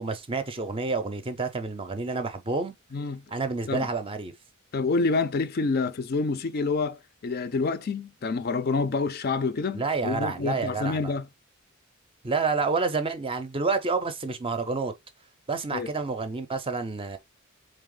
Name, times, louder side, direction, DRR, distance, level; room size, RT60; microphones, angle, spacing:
voice 1, 0.0-2.8 3.3-4.3 9.7-11.1 12.2-14.9 15.5-17.2, right 4 dB, 25° right, 0.5 m, -29 dB
voice 2, 2.9-3.2 3.7-3.9 4.7-11.3 15.7-15.9, left 4 dB, 45° left, 0.4 m, -27 dB
3.9 x 3.3 x 3.7 m
head